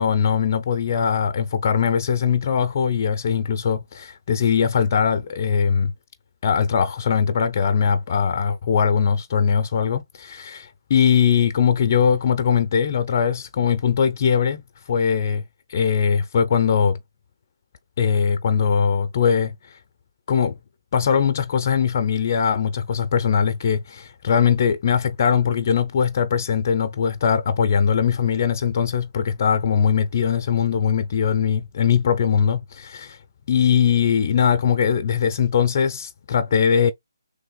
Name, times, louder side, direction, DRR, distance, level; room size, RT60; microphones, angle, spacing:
voice 1, 0.0-5.9 6.4-14.6 14.9-15.4 15.7-17.0 18.0-19.8 20.3-20.6 20.9-33.2 33.5-36.9, left 7 dB, 35° left, 0.5 m, -21 dB
3.2 x 2.5 x 3.7 m
figure-of-eight pair, 160°, 2 cm